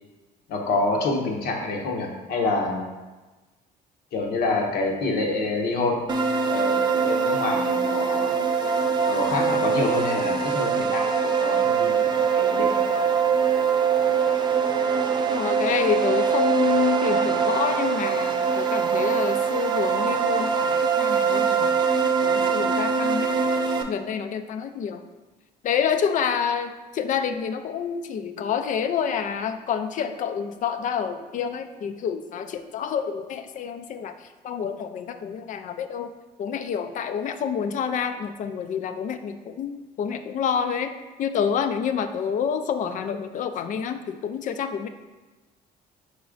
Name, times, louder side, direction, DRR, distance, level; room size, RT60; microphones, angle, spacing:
voice 1, 0.5-2.9 4.1-8.3 9.1-12.1 12.3-12.8, left 3 dB, 65° left, 1 dB, 0.9 m, -27 dB
sound 1, 6.1-23.8, right 6 dB, 25° right, 0.4 m, -23 dB
voice 2, 15.3-23.4 23.9-25.0 25.6-36.1 36.4-40.9 41.2-44.9, left 7 dB, 50° left, 9 dB, 0.4 m, -28 dB
4.9 x 4.0 x 2.5 m, 1.2 s
cardioid pair, 110°, 17 cm